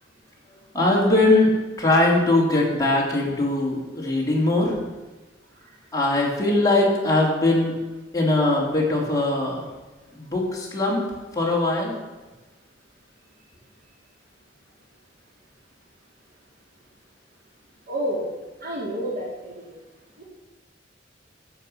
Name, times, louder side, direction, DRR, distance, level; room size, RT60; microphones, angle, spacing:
voice 1, 0.7-1.5 1.8-4.8 5.9-7.7 8.1-9.6 10.1-11.0 11.3-12.0, left 2 dB, 20° left, -3 dB, 3.3 m, -21 dB
voice 2, 17.9-18.3 18.6-19.7 20.2-20.3, right 1 dB, 55° right, -4 dB, 3.1 m, -29 dB
13.5 x 7.8 x 5.8 m, 1.2 s
head